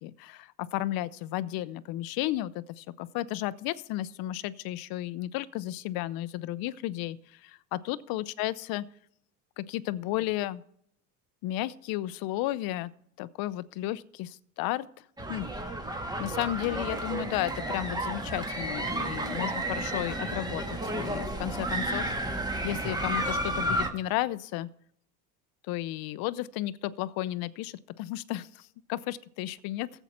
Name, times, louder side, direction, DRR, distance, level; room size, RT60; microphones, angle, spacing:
voice 1, 0.0-8.9 9.6-10.6 11.4-12.9 13.2-14.9 15.3-15.5 16.2-24.7 25.7-29.9, left 15 dB, 60° left, 17 dB, 0.7 m, -33 dB
sound 1, 15.2-23.9, right 1 dB, 10° right, 1.5 m, -32 dB
14.5 x 8.1 x 4.3 m, 0.68 s
supercardioid pair, 120°, 40 cm